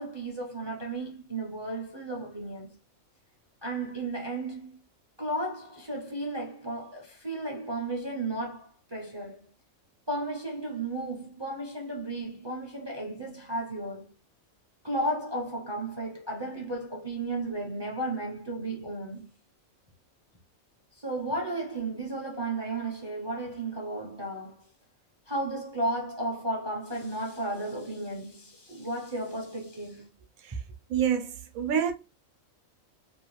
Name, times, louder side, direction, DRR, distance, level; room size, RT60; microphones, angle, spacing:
voice 1, 0.0-2.7 3.6-4.8 5.2-9.5 10.1-14.1 14.8-19.3 20.9-24.7 25.3-30.1, right 2 dB, 30° right, 0.5 m, -34 dB
voice 2, 30.9-31.9, right 8 dB, 85° right, 1.1 m, -28 dB
2.8 x 2.4 x 3.1 m
omnidirectional pair, 1.4 m